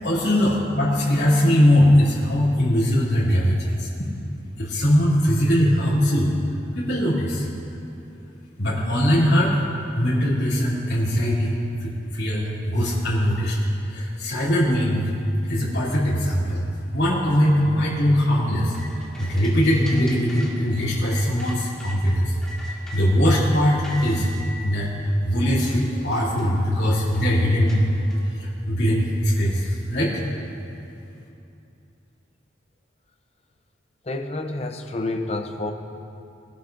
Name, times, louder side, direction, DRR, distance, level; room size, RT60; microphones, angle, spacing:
voice 1, 0.0-4.1 4.6-6.3 6.7-7.5 8.6-9.6 9.9-13.6 13.9-15.0 15.5-16.6 16.9-18.7 19.2-22.3 22.9-24.3 24.6-27.8 28.4-30.2, equal, 65° left, -9 dB, 2.8 m, -21 dB
sound 1, 18.5-22.0 22.4-23.4 23.8-24.4 25.1-25.2 25.5-28.3, equal, 5° left, 1.8 m, -42 dB
voice 2, 34.1-35.7, left 2 dB, 35° left, 5 dB, 0.7 m, -29 dB
21.0 x 12.0 x 2.6 m, 2.7 s
head